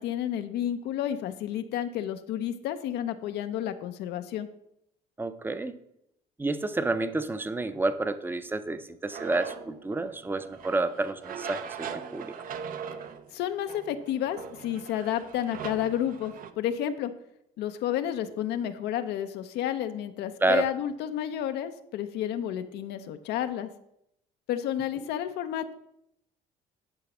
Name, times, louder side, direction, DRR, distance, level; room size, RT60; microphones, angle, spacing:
voice 1, 0.0-4.5 13.3-17.1 17.6-23.7 24.5-25.7, left 10 dB, 80° left, 8 dB, 0.7 m, -31 dB
voice 2, 5.2-5.8 6.4-12.3 20.4-20.7, right 2 dB, 10° right, 11 dB, 0.6 m, -29 dB
sound 1, 9.1-16.5, right 7 dB, 55° right, 0.7 m, -41 dB
10.5 x 4.0 x 6.0 m, 0.78 s
cardioid pair, 110°, 17 cm